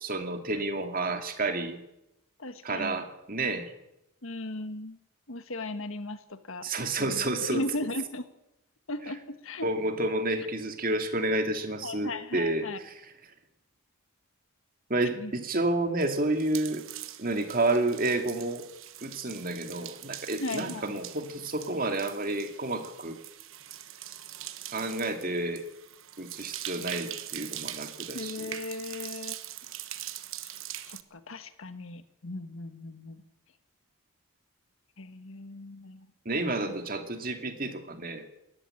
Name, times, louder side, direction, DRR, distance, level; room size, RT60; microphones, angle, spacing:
voice 1, 0.0-1.8 2.6-3.7 6.6-7.6 9.6-12.9 14.9-16.8 17.2-18.7 19.0-23.2 24.7-25.6 26.2-28.5 36.3-38.3, right 2 dB, 40° right, 6 dB, 2.3 m, -30 dB
voice 2, 2.4-3.0 4.2-5.0 5.3-6.7 7.0-8.3 8.9-9.7 11.8-12.8 15.2-15.3 20.4-21.0 28.1-29.4 30.8-33.2 35.0-36.1 36.7-36.8, left 2 dB, 65° left, 10 dB, 1.6 m, -37 dB
sound 1, 16.0-31.0, right 12 dB, 60° right, 1.2 m, -42 dB
19.0 x 14.5 x 9.9 m, 0.87 s
head